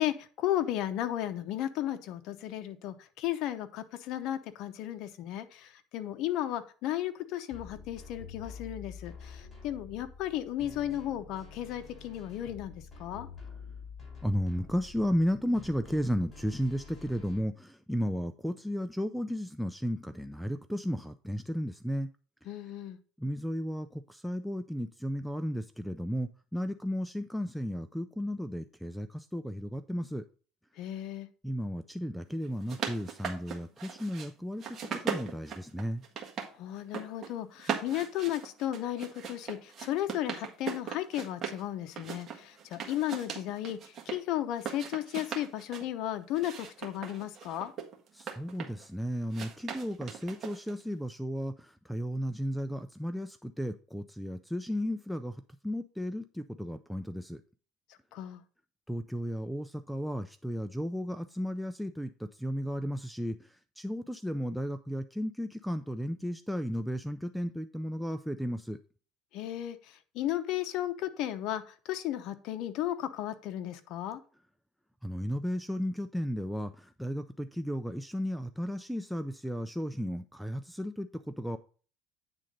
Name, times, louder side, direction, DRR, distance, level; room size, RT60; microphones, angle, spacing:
voice 1, 0.0-12.7 13.0-13.3 22.5-23.0 30.8-31.3 36.6-43.8 44.1-47.7 58.1-58.4 69.3-69.8 70.1-74.2, left 12 dB, 65° left, 9 dB, 0.8 m, -34 dB
sound 1, 7.5-17.4, left 5 dB, 15° left, 4.4 m, -48 dB
voice 2, 14.2-22.1 23.2-30.2 31.4-34.8 35.0-36.0 48.1-57.4 58.9-68.8 75.0-81.6, equal, ahead, 10 dB, 0.4 m, -34 dB
sound 2, 32.4-34.3 34.6-36.5 36.8-37.3 37.6-41.6 42.0-44.2 44.6-45.9 46.3-48.9 49.3-50.8, right 7 dB, 40° right, 1.5 m, -39 dB
9.0 x 3.8 x 5.2 m, 0.39 s
cardioid pair, 125°, 0 cm